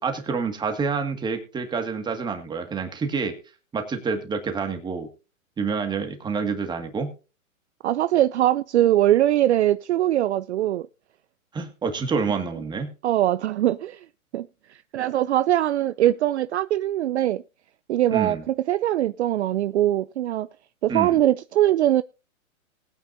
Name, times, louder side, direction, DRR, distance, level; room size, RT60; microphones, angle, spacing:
voice 1, 0.0-3.4 3.7-5.1 5.6-7.1 11.5-12.9 18.1-18.4 20.9-21.2, right 5 dB, 10° right, 1.9 m, -28 dB
voice 2, 7.8-10.9 13.0-14.0 14.3-14.5 14.9-17.4 17.9-20.5 20.8-22.0, right 13 dB, 55° right, 0.6 m, -21 dB
20.0 x 9.1 x 2.7 m
hypercardioid pair, 145°, 42 cm